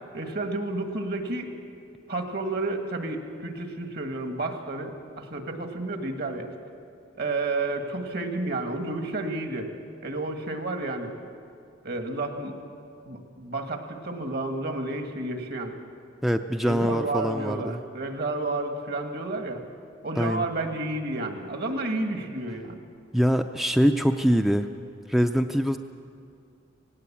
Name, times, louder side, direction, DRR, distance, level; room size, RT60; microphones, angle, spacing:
voice 1, 0.1-1.5 2.1-6.5 7.2-9.7 10.0-11.1 11.8-12.5 13.1-15.8 16.6-19.6 20.0-22.8, right 2 dB, 55° right, 5 dB, 1.8 m, -31 dB
voice 2, 16.2-17.8 20.2-20.5 23.1-24.7 25.1-25.8, equal, ahead, 6 dB, 0.4 m, -23 dB
18.0 x 17.5 x 8.6 m, 2.5 s
head